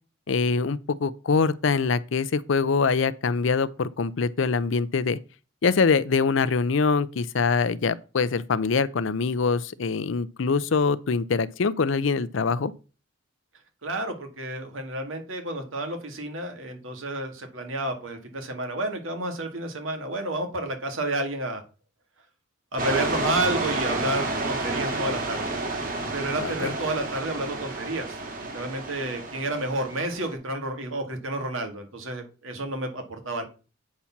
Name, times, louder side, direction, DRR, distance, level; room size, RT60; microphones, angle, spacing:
voice 1, 0.3-5.2 5.6-12.7 26.4-26.7, left 4 dB, 65° left, 0.5 m, -24 dB
voice 2, 13.8-21.6 22.7-25.5 26.1-28.2 28.5-33.5, right 1 dB, 75° right, 2.1 m, -30 dB
sound 1, 22.8-30.3, right 2 dB, 45° right, 2.2 m, -30 dB
8.6 x 4.3 x 5.8 m
head